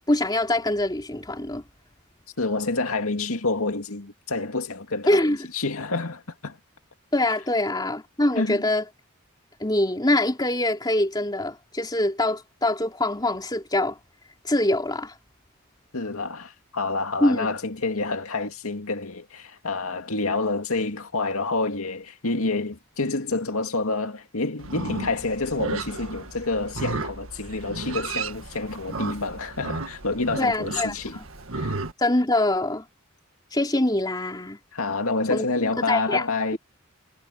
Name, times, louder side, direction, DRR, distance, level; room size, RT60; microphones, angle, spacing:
voice 1, 0.1-1.6 5.1-5.4 7.1-8.8 9.6-14.0 14.4-15.1 17.2-17.5 30.4-31.2 32.0-32.8 33.5-34.6 35.3-36.2, left 1 dB, 20° left, 3.3 m, -24 dB
voice 2, 2.4-6.6 8.4-8.6 15.9-31.2 31.5-31.8 34.7-36.6, left 3 dB, 85° left, 2.3 m, -28 dB
Livestock farm animals working animals, 24.6-31.9, right 3 dB, 70° right, 1.8 m, -34 dB
head